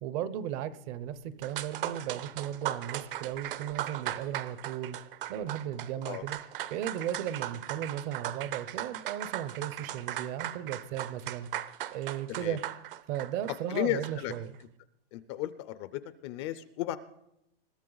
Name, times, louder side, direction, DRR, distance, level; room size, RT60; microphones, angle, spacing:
voice 1, 0.0-5.0 5.3-6.4 6.7-11.5 11.9-12.6 13.1-14.5, right 10 dB, 30° right, 16 dB, 0.7 m, -36 dB
sound 1, 1.1-1.2 1.4-14.4, right 13 dB, 60° right, 1.0 m, -38 dB
voice 2, 12.3-12.6 13.7-14.3 15.1-17.0, left 14 dB, 30° left, 15 dB, 0.5 m, -34 dB
21.5 x 13.5 x 3.9 m, 0.82 s
supercardioid pair, 160°, 30 cm